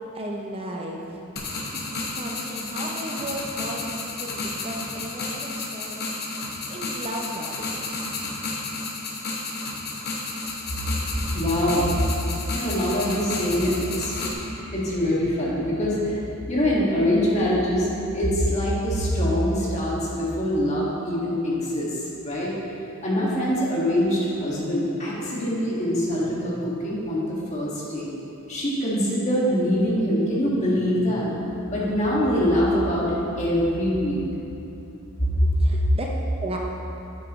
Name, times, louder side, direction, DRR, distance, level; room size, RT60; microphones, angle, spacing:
voice 1, 0.1-1.2 1.7-6.0 6.4-8.3 25.2-25.3 35.5-36.1 36.4-36.6, right 1 dB, 30° right, 0 dB, 0.5 m, -35 dB
sound 1, 1.4-14.3, left 3 dB, 50° left, 1.0 m, -32 dB
voice 2, 11.3-11.9 12.5-14.1 14.5-16.2 16.5-22.5 23.0-28.1 28.5-31.3 31.7-34.2 35.2-35.3, equal, 35° left, -6 dB, 1.8 m, -24 dB
9.5 x 8.1 x 3.1 m, 2.9 s
head